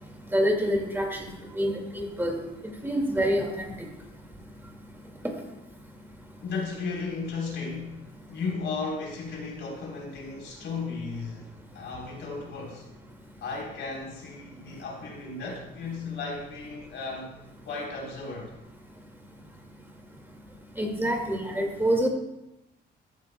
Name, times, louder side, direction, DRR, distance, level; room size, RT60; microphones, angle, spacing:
voice 1, 0.3-1.3 1.5-2.4 2.8-3.7 20.8-22.1, equal, 10° right, 1 dB, 2.1 m, -26 dB
voice 2, 6.4-11.5 11.7-12.8 13.4-17.3 17.7-18.5, left 4 dB, 70° left, -1 dB, 3.6 m, -35 dB
14.5 x 10.5 x 2.2 m, 0.94 s
cardioid pair, 90°, 20 cm